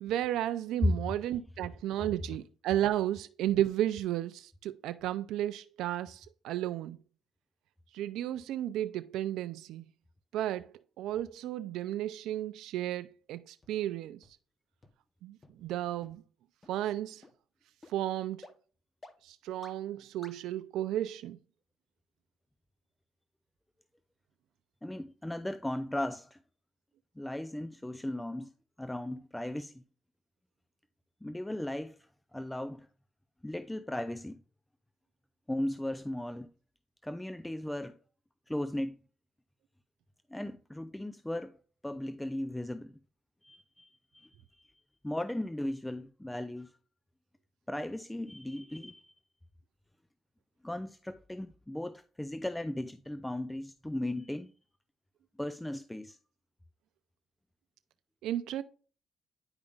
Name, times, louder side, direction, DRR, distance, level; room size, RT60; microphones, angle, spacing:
voice 1, 0.0-7.0 7.9-9.9 10.3-14.2 15.2-16.2 16.7-17.2 17.9-18.4 19.2-21.4 58.2-58.6, right 12 dB, 90° right, 0.3 m, -33 dB
sound 1, 13.6-13.7 14.2-14.3 14.8-14.9 15.4-15.5 16.0-16.1 16.6-16.7 17.2-17.3 17.8-17.9 18.4-18.5 19.0-19.1 19.6-19.7 20.2-20.3, left 2 dB, 25° left, 0.9 m, -51 dB
voice 2, 24.8-26.4 27.2-29.8 31.2-32.9 33.4-34.4 35.5-36.5 37.0-38.0 38.5-39.0 40.3-43.0 43.4-44.7 45.0-46.7 47.7-49.1 50.6-54.5 55.4-56.2, left 1 dB, 10° left, 0.4 m, -36 dB
9.6 x 5.0 x 2.4 m
cardioid pair, 90°, 0 cm